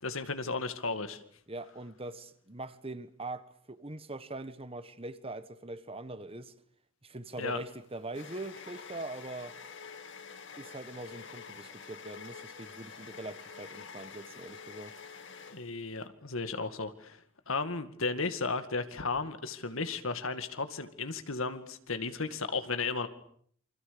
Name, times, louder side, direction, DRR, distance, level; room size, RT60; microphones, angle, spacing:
voice 1, 0.0-1.2 7.4-7.6 15.5-17.2 17.5-23.1, left 4 dB, 75° left, 2.2 m, -34 dB
voice 2, 1.5-6.5 7.0-9.5 10.6-15.0, right 2 dB, 25° right, 1.4 m, -42 dB
sound 1, 7.3-16.0, left 5 dB, 60° left, 2.5 m, -48 dB
28.5 x 25.5 x 7.0 m
head